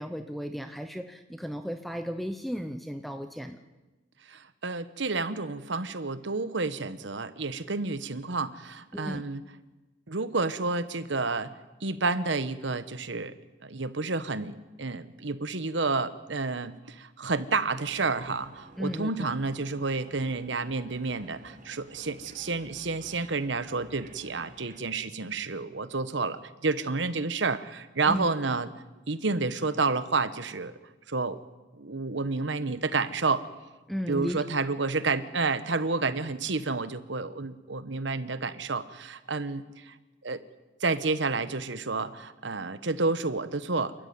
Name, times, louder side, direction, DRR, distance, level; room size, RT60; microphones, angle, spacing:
voice 1, 0.0-3.6 8.9-9.2 18.8-19.3 28.1-28.3 33.9-34.4, equal, ahead, 8 dB, 0.8 m, -34 dB
voice 2, 4.3-9.4 10.1-11.5 11.8-13.3 13.6-28.7 29.1-30.7 31.1-31.4 31.7-33.4 34.1-39.9 40.2-40.4 40.8-43.9, right 3 dB, 75° right, 13 dB, 1.2 m, -30 dB
sound 1, 17.8-24.8, right 2 dB, 40° right, 2.1 m, -53 dB
28.5 x 13.0 x 9.5 m, 1.1 s
head